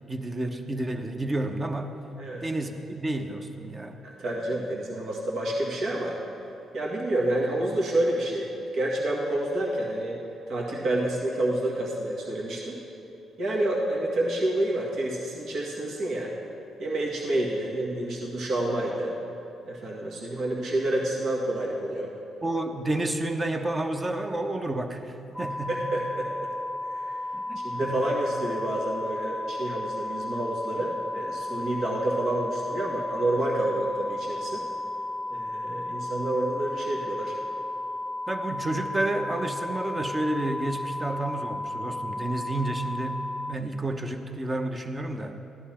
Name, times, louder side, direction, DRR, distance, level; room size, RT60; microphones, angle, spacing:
voice 1, 0.1-1.9 2.4-4.0 22.4-25.9 27.3-28.0 38.3-45.4, right 1 dB, 30° right, 5 dB, 1.1 m, -30 dB
voice 2, 4.0-6.2 6.7-10.2 10.5-12.8 13.4-16.3 16.8-19.1 19.6-22.1 25.7-26.5 26.8-27.2 27.6-34.6 35.3-37.4, right 1 dB, 65° right, -3 dB, 1.8 m, -28 dB
sound 1, 25.3-43.5, left 2 dB, 5° right, 0.7 m, -34 dB
15.0 x 11.0 x 4.4 m, 3.0 s
supercardioid pair, 55°, 0 cm